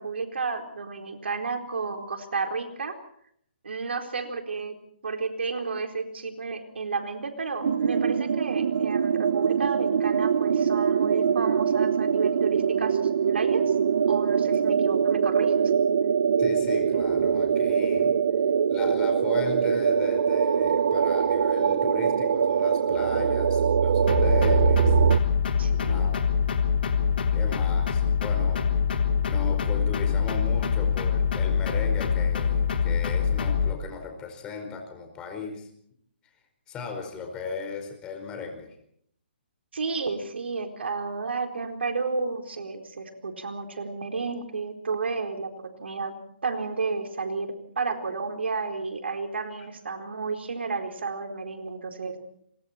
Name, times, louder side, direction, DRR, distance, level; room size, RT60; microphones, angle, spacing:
voice 1, 0.0-3.0 3.6-4.8 5.0-13.7 14.1-15.7 25.6-26.1 39.7-45.5 45.8-46.1 46.4-52.1, right 4 dB, 80° right, 5 dB, 4.2 m, -31 dB
sound 1, 7.6-25.2, right 7 dB, 60° right, 0.8 m, -23 dB
voice 2, 16.4-18.2 18.7-24.9 25.8-26.2 27.3-28.6 29.2-35.7 36.7-38.7, left 5 dB, 15° left, 4 dB, 4.8 m, -37 dB
sound 2, 24.1-33.7, left 7 dB, 60° left, 3.7 m, -24 dB
30.0 x 24.5 x 4.4 m, 0.69 s
hypercardioid pair, 160°, 6 cm